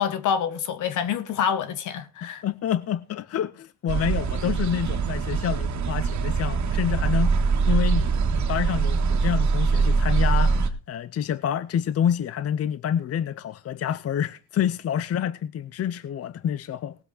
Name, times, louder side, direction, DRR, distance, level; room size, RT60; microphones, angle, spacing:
voice 1, 0.0-2.4, left 8 dB, 85° left, 1.7 m, -26 dB
voice 2, 2.2-17.0, left 9 dB, 55° left, 0.7 m, -28 dB
sound 1, 3.9-10.7, right 5 dB, 70° right, 1.8 m, -23 dB
18.5 x 7.9 x 4.1 m
cardioid pair, 90°, 30 cm